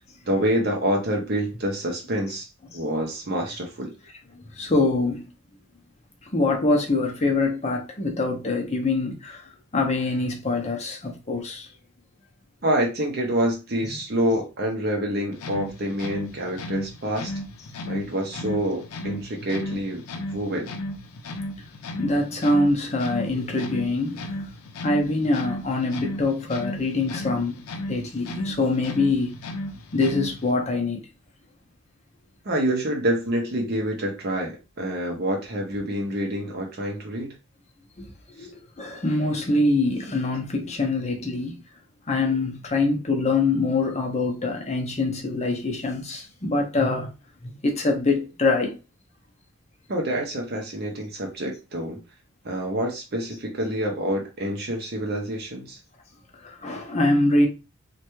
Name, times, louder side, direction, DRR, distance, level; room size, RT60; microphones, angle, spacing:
voice 1, 0.3-2.5 2.7-3.9 12.6-17.3 17.9-20.0 20.3-20.7 32.4-37.3 38.4-38.5 49.9-52.0 52.4-55.8, right 1 dB, 45° right, 0.6 m, -27 dB
voice 2, 4.3-5.3 6.3-11.7 13.8-13.9 22.0-24.3 24.8-27.6 27.9-29.3 29.9-31.0 38.0-38.1 38.4-41.6 42.1-47.1 47.4-48.8 56.4-57.5, left 2 dB, 30° left, 0.6 m, -24 dB
sound 1, 15.3-30.6, left 1 dB, 90° left, 0.5 m, -35 dB
3.2 x 2.2 x 3.0 m
head